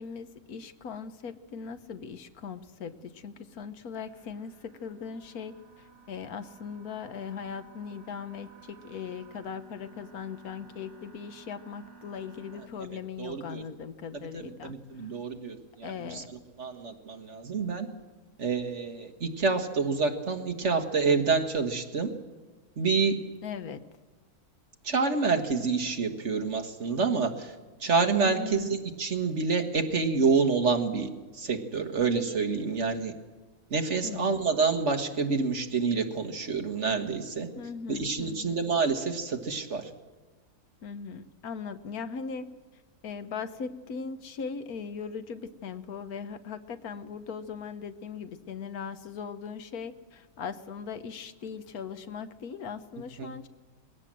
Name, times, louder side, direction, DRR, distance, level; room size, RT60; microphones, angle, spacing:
voice 1, 0.0-15.1 15.8-16.3 23.4-23.9 28.2-28.8 34.0-34.5 37.5-38.7 40.8-42.5 43.0-53.5, left 6 dB, 80° left, 11 dB, 1.4 m, -39 dB
sound 1, 4.0-12.7, right 5 dB, 35° left, 6.7 m, -54 dB
voice 2, 13.2-13.6 14.1-16.2 16.6-17.9 18.4-22.1 22.8-23.2 24.8-27.5 27.8-31.1 31.3-33.1 33.7-37.5 37.9-39.8 53.2-53.3, right 4 dB, 50° right, 5 dB, 1.8 m, -28 dB
21.0 x 17.0 x 7.6 m, 1.3 s
omnidirectional pair, 1.6 m